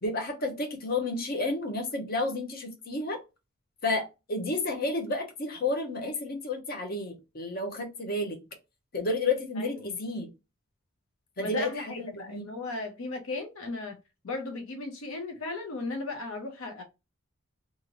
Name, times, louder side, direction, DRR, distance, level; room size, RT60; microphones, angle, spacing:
voice 1, 0.0-3.2 3.8-8.4 8.9-10.3 11.4-12.4, left 2 dB, 45° left, 0.8 m, -31 dB
voice 2, 9.6-9.9 11.4-14.0 14.2-16.8, left 3 dB, 80° left, 0.6 m, -36 dB
2.7 x 2.5 x 2.9 m
head